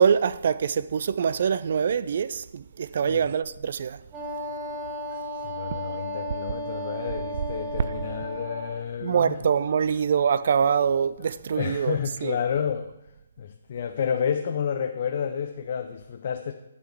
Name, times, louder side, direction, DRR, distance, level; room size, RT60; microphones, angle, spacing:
voice 1, 0.0-4.0 7.9-8.0 8.3-8.4 9.0-12.4, right 7 dB, 50° right, 0.3 m, -24 dB
Wind instrument woodwind instrument, 4.1-8.8, equal, 20° right, 2.0 m, -34 dB
voice 2, 5.1-9.4 10.7-10.8 11.2-12.9 13.4-16.5, left 7 dB, 45° left, 0.5 m, -30 dB
11.0 x 6.2 x 3.4 m
figure-of-eight pair, 140°, 0 cm